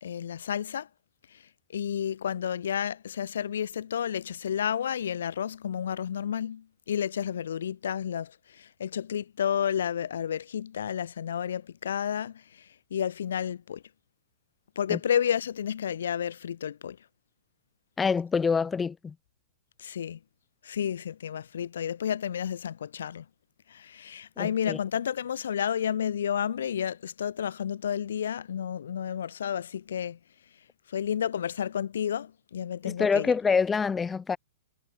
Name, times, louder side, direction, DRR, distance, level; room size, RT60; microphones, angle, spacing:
voice 1, 0.0-0.9 1.3-1.4 1.7-13.8 14.8-17.0 19.8-20.2 20.6-23.2 23.7-30.2 30.9-33.3, left 9 dB, 70° left, 1.0 m, -31 dB
voice 2, 18.0-19.1 24.4-24.8 32.8-34.4, left 5 dB, 15° left, 0.4 m, -26 dB
hypercardioid pair, 115°, 0 cm